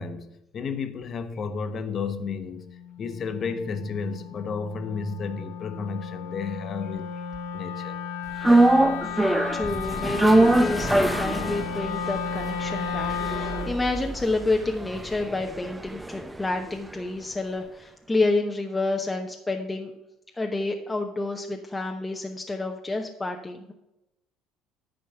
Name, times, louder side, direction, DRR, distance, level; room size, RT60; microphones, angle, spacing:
voice 1, 0.0-2.7 3.0-7.2 7.5-8.0, left 5 dB, 45° left, 8 dB, 1.1 m, -32 dB
Wind instrument woodwind instrument, 2.2-13.8, left 7 dB, 90° left, 0.7 m, -34 dB
sound 1, 8.4-16.7 17.0-17.1, right 2 dB, 10° right, 0.6 m, -24 dB
voice 2, 9.5-19.9 20.4-23.7, left 2 dB, 15° left, 2 dB, 0.9 m, -29 dB
10.0 x 4.3 x 6.7 m, 0.90 s
supercardioid pair, 95°, 0 cm